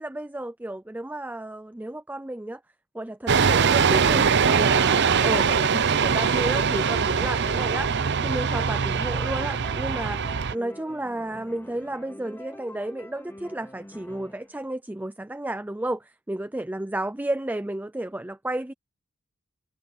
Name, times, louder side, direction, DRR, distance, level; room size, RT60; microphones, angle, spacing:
voice 1, 0.0-2.6 2.9-7.9 8.2-18.7, right 1 dB, 10° right, 0.4 m, -32 dB
sound 1, 3.3-10.5, right 6 dB, 55° right, 0.7 m, -22 dB
sound 2, 5.6-14.6, left 1 dB, 10° left, 2.2 m, -46 dB
head